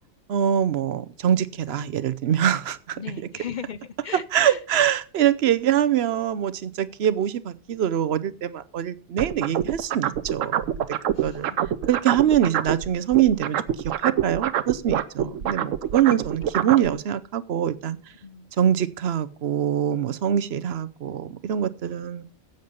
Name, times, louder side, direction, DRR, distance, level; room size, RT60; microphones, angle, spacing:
voice 1, 0.3-3.0 4.3-10.9 11.2-11.5 11.9-13.6 14.0-18.0 18.6-22.3, right 10 dB, 60° right, 0.9 m, -24 dB
voice 2, 3.0-4.6 11.1-11.6 15.2-15.6 18.2-18.5, left 7 dB, 45° left, 0.7 m, -38 dB
sound 1, 9.2-12.9 13.1-16.9, right 10 dB, 80° right, 1.1 m, -25 dB
10.5 x 8.2 x 5.3 m
omnidirectional pair, 1.3 m